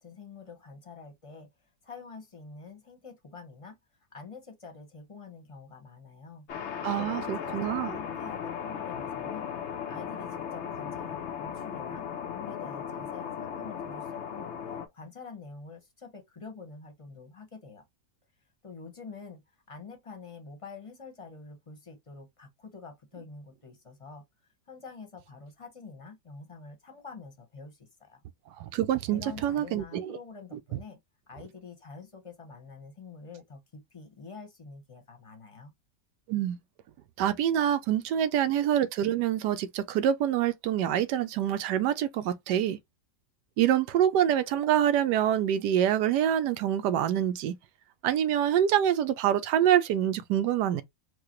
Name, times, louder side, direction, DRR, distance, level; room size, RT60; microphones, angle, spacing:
voice 1, 0.0-1.5 1.8-3.8 4.1-6.5 6.9-9.5 9.9-17.8 18.6-24.2 24.7-28.2 29.1-31.0 31.3-35.7, left 4 dB, 25° left, 0.8 m, -46 dB
sound 1, 6.5-14.9, left 8 dB, 65° left, 0.7 m, -36 dB
voice 2, 6.8-7.9 28.6-30.2 36.3-36.6 37.2-42.8 43.6-47.6 48.0-50.8, right 10 dB, 80° right, 1.2 m, -26 dB
4.7 x 2.2 x 3.0 m
omnidirectional pair, 1.8 m